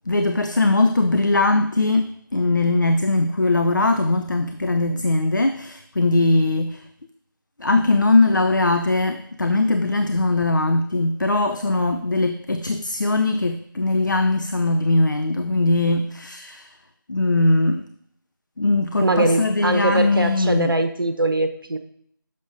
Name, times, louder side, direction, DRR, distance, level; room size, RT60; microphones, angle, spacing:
voice 1, 0.1-6.8 7.6-16.8 17.1-17.9 18.6-20.7, left 2 dB, 60° left, 0.6 m, -20 dB
voice 2, 19.0-21.8, right 2 dB, 70° right, 1.0 m, -22 dB
10.5 x 6.7 x 2.6 m
figure-of-eight pair, 170°, 12 cm